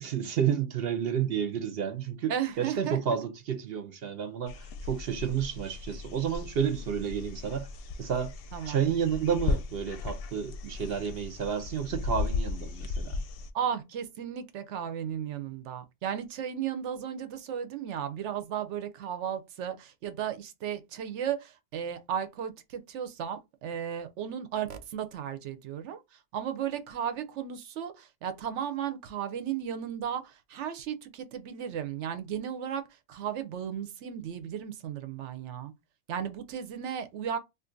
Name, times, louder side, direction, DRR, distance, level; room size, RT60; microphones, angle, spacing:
voice 1, 0.0-2.3 2.6-7.7 8.0-8.3 8.7-13.2, right 8 dB, 65° right, 0.8 m, -30 dB
voice 2, 2.3-3.0 8.5-8.8 13.5-35.7 36.1-37.4, right 9 dB, 80° right, 0.9 m, -35 dB
sound 1, 4.5-13.5, left 3 dB, 65° left, 0.7 m, -36 dB
2.5 x 2.5 x 3.7 m
omnidirectional pair, 1.2 m